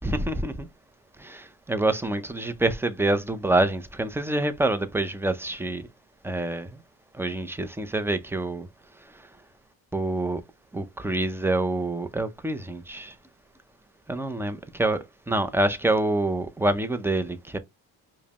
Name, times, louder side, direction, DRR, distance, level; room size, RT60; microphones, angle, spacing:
voice 1, 0.0-0.7 1.2-5.8 6.2-6.7 7.2-8.7 9.9-10.4 10.7-13.1 14.1-15.0 15.3-17.6, right 2 dB, 5° right, 0.4 m, -26 dB
5.0 x 2.1 x 2.8 m
cardioid pair, 110°, 38 cm